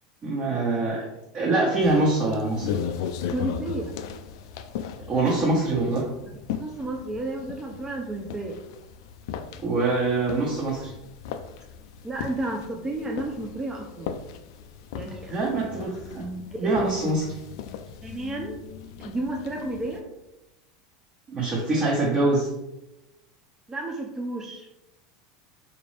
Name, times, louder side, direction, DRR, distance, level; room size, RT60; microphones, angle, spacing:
voice 1, 0.2-1.1 1.3-2.8 5.1-6.0 9.6-10.9 15.3-17.3 21.3-22.5, right 2 dB, 40° right, -5 dB, 1.2 m, -24 dB
sound 1, 1.8-20.0, left 8 dB, 70° left, 0.3 m, -37 dB
voice 2, 3.3-3.9 6.6-8.6 12.0-14.1 15.0-15.4 16.5-16.7 18.0-18.6 19.0-20.0 23.7-24.7, right 2 dB, 20° right, 1 dB, 0.5 m, -32 dB
4.2 x 2.6 x 3.2 m, 0.92 s
hypercardioid pair, 100°, 3 cm